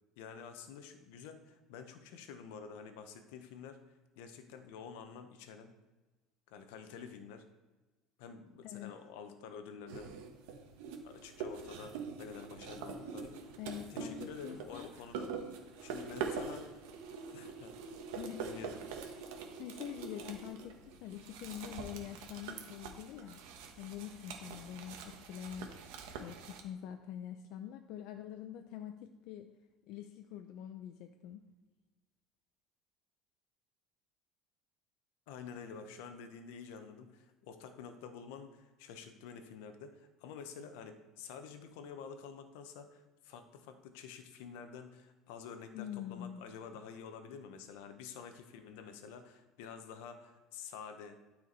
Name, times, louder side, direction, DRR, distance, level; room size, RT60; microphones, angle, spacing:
voice 1, 0.2-3.8 4.2-5.7 6.5-7.4 8.2-10.2 11.0-13.3 13.9-15.3 15.8-16.8 17.3-17.8 18.4-18.8 35.3-51.2, left 6 dB, 85° left, 8 dB, 1.0 m, -49 dB
sound 1, 9.9-26.6, right 5 dB, 85° right, 1.2 m, -44 dB
voice 2, 13.6-14.9 18.1-18.4 19.6-23.4 23.8-25.7 26.2-29.5 29.9-31.4 45.7-46.4 46.7-46.8, left 10 dB, 65° left, 6 dB, 0.6 m, -45 dB
12.5 x 4.9 x 4.1 m, 1.2 s
cardioid pair, 145°, 0 cm